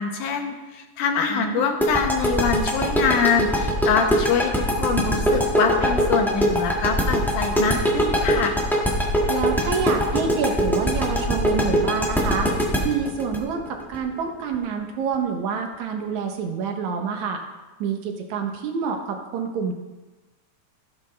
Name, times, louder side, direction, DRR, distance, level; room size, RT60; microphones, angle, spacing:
voice 1, 0.0-8.6, left 6 dB, 75° left, 4 dB, 2.5 m, -24 dB
voice 2, 1.3-1.7 9.3-12.5 12.8-17.4 17.8-19.7, right 6 dB, 70° right, 4 dB, 2.1 m, -27 dB
sound 1, 1.8-14.5, equal, ahead, 0.6 m, -22 dB
16.0 x 7.6 x 3.3 m, 1.2 s
omnidirectional pair, 3.7 m